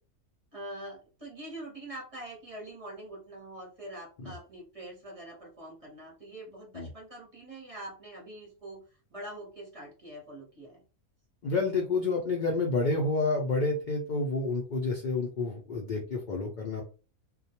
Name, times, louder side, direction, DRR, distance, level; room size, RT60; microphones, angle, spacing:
voice 1, 0.5-8.8 9.1-10.8, right 1 dB, 30° right, -3 dB, 0.7 m, -44 dB
voice 2, 11.4-16.8, left 3 dB, 80° left, -1 dB, 0.4 m, -29 dB
2.3 x 2.1 x 2.8 m, 0.34 s
omnidirectional pair, 1.5 m